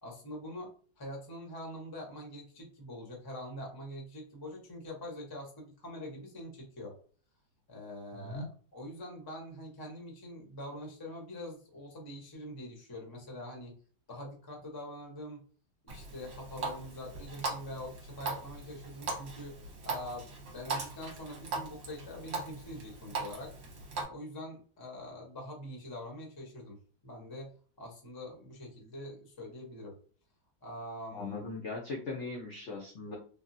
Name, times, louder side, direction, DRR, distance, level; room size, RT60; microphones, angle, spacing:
voice 1, 0.0-6.9 7.7-8.5 8.7-13.8 14.1-15.4 15.8-23.5 24.1-26.8 27.0-27.5 27.8-29.9 30.6-31.4, left 1 dB, 35° left, 0 dB, 0.3 m, -44 dB
voice 2, 8.1-8.5 31.1-33.2, left 3 dB, 80° left, -1 dB, 0.6 m, -39 dB
Water tap faucet, 15.9-24.0, right 3 dB, 55° right, 1.1 m, -40 dB
3.5 x 2.1 x 2.6 m, 0.43 s
omnidirectional pair, 2.1 m